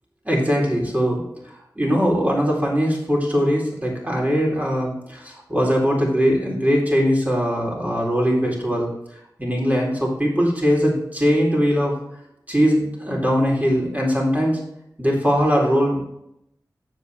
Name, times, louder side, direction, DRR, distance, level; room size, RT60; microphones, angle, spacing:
voice 1, 0.3-1.2 1.8-8.9 9.4-11.9 12.5-14.6 15.0-16.0, equal, 20° right, -2 dB, 3.9 m, -20 dB
9.4 x 7.7 x 3.6 m, 0.79 s
wide cardioid pair, 45°, 7 cm